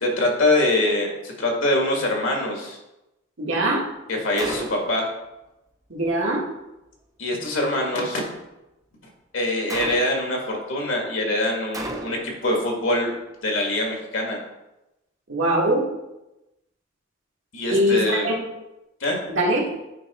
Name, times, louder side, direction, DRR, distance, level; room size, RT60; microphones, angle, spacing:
voice 1, 0.0-2.8 4.1-5.1 7.2-8.2 9.3-13.1 13.4-14.4 17.5-18.3 19.0-19.2, left 1 dB, 70° left, 0 dB, 1.8 m, -24 dB
voice 2, 3.4-3.8 5.9-6.5 15.3-15.9 17.7-18.4 19.3-19.7, right 1 dB, 70° right, -2 dB, 1.6 m, -22 dB
Gunshot gunfire, 4.4-5.1 9.7-10.4 11.7-12.4, right 2 dB, 15° right, 0.5 m, -33 dB
9.1 x 3.4 x 4.2 m, 0.96 s
head